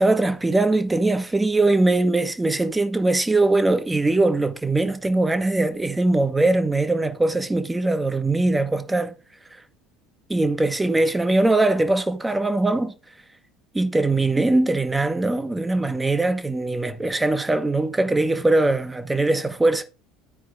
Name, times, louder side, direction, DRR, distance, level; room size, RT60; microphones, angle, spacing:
voice 1, 0.0-9.1 10.3-12.9 13.7-19.8, right 2 dB, 10° right, 0.9 m, -21 dB
13.5 x 4.6 x 2.6 m
hypercardioid pair, 70°, 0 cm